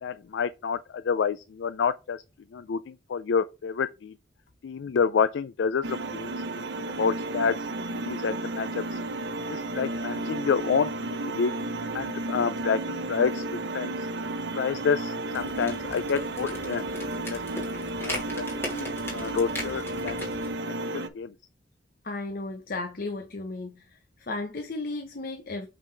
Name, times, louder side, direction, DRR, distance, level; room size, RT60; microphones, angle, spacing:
voice 1, 0.0-2.2 2.5-4.1 4.6-6.3 6.8-7.6 8.0-9.0 9.5-11.5 11.9-14.0 14.6-16.9 17.3-17.4 18.0-18.4 18.7-20.2 20.6-21.3, left 6 dB, 80° left, 0.4 m, -28 dB
sound 1, 5.8-21.1, right 2 dB, 70° right, 0.9 m, -33 dB
sound 2, 15.3-20.5, left 1 dB, 15° left, 3.0 m, -39 dB
voice 2, 22.0-23.8 24.2-25.7, left 2 dB, 55° left, 0.9 m, -34 dB
8.7 x 4.0 x 3.3 m
head